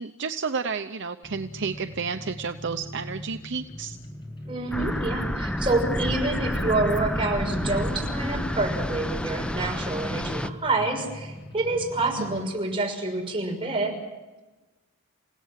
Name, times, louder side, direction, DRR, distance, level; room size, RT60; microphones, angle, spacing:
voice 1, 0.0-4.0 12.2-12.5, right 5 dB, 60° right, 8 dB, 0.8 m, -31 dB
sound 1, 1.2-12.4, left 1 dB, 20° left, 7.1 m, -41 dB
voice 2, 4.5-14.0, right 2 dB, 25° right, 1 dB, 6.0 m, -27 dB
sound 2, 4.7-10.5, equal, 5° left, 0.8 m, -29 dB
29.0 x 17.5 x 7.5 m, 1.1 s
head